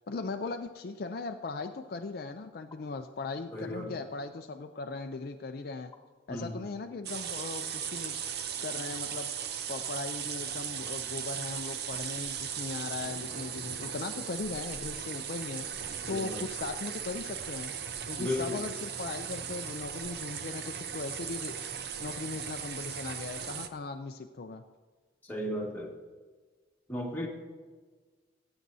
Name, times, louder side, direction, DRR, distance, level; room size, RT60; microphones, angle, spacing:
voice 1, 0.1-5.9 6.3-8.2 8.6-9.3 9.7-15.7 16.1-17.7 18.1-21.5 22.0-24.6, left 3 dB, 55° left, 6 dB, 0.4 m, -38 dB
voice 2, 3.5-3.9 6.3-6.6 16.1-16.4 18.2-18.6 25.3-25.9 26.9-27.3, left 1 dB, 10° left, -3 dB, 1.7 m, -34 dB
sound 1, 7.0-23.7, right 8 dB, 60° right, 0.7 m, -37 dB
20.0 x 8.8 x 2.7 m, 1.4 s
head